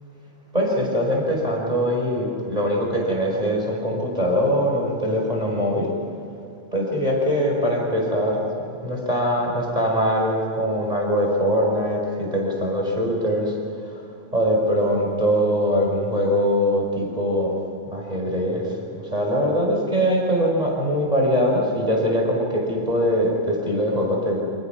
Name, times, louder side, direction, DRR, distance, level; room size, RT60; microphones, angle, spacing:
voice 1, 0.5-5.9 6.7-8.4 8.8-13.5 14.3-17.6 17.9-24.4, equal, 10° right, -1 dB, 5.6 m, -22 dB
28.5 x 26.5 x 6.1 m, 2.8 s
omnidirectional pair, 3.4 m